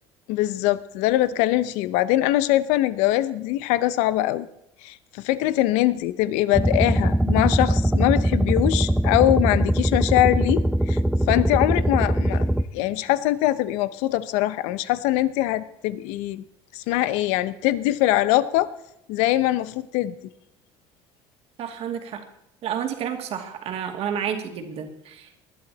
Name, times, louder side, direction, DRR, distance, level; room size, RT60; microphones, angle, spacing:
voice 1, 0.3-4.5 4.8-11.0 11.3-12.4 12.7-16.4 16.7-18.7 19.1-20.1, left 15 dB, 75° left, 15 dB, 0.8 m, -22 dB
sound 1, 6.5-12.6, right 1 dB, 5° right, 0.7 m, -21 dB
voice 2, 21.6-22.3 22.6-25.3, right 8 dB, 60° right, 5 dB, 2.5 m, -30 dB
20.0 x 11.5 x 4.2 m, 0.81 s
supercardioid pair, 85°, 12 cm